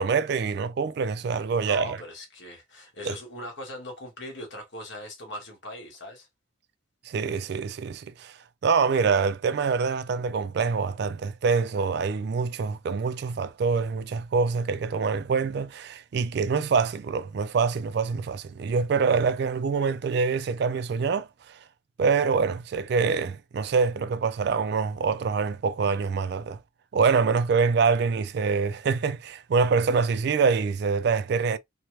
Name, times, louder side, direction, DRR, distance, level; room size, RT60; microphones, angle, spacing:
voice 1, 0.0-2.0 3.0-3.1 7.1-8.4 8.6-21.6 22.0-26.6 26.9-31.6, right 5 dB, 55° right, 0.3 m, -25 dB
voice 2, 1.6-6.3, left 1 dB, 65° left, 1.3 m, -40 dB
2.9 x 2.1 x 3.2 m
head